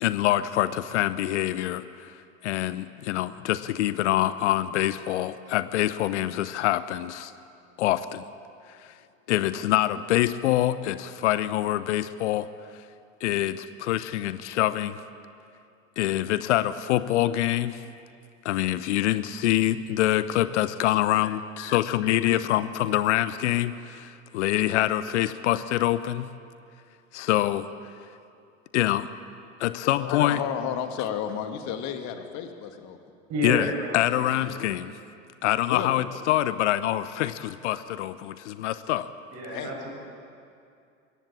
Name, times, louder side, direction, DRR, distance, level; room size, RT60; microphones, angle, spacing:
voice 1, 0.0-7.3 7.8-8.2 8.8-8.9 9.3-12.5 13.2-15.0 16.0-17.8 18.4-26.3 27.1-27.7 28.7-29.1 29.6-30.4 33.4-34.9 35.4-39.1, left 14 dB, 60° left, 15 dB, 0.8 m, -25 dB
voice 2, 29.8-33.0 35.6-35.9 39.5-39.7, left 9 dB, 45° left, 7 dB, 2.1 m, -32 dB
voice 3, 33.3-34.6 39.3-39.9, equal, 40° right, 0 dB, 7.1 m, -31 dB
22.0 x 16.5 x 8.5 m, 2.4 s
figure-of-eight pair, 80°, 40 cm